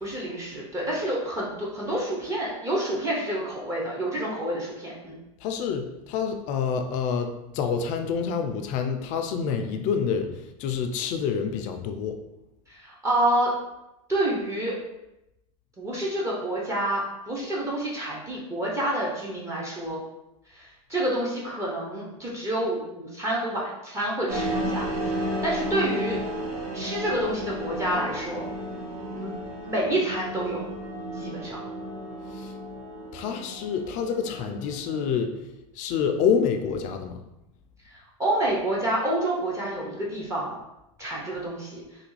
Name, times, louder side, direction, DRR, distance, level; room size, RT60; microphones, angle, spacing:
voice 1, 0.0-5.2 12.7-13.5 14.1-14.8 15.8-20.0 20.5-24.8 25.2-26.2 26.7-28.5 29.1-29.3 29.6-30.6 31.1-31.6 37.8-40.6 41.0-41.8, right 1 dB, 15° right, -5 dB, 0.7 m, -28 dB
voice 2, 5.4-12.2 32.3-32.5 33.1-35.3 35.8-37.2, left 6 dB, 45° left, 6 dB, 0.4 m, -27 dB
sound 1, 24.3-35.1, right 1 dB, 85° right, 0.9 m, -33 dB
3.3 x 2.3 x 3.1 m, 0.91 s
hypercardioid pair, 120°, 18 cm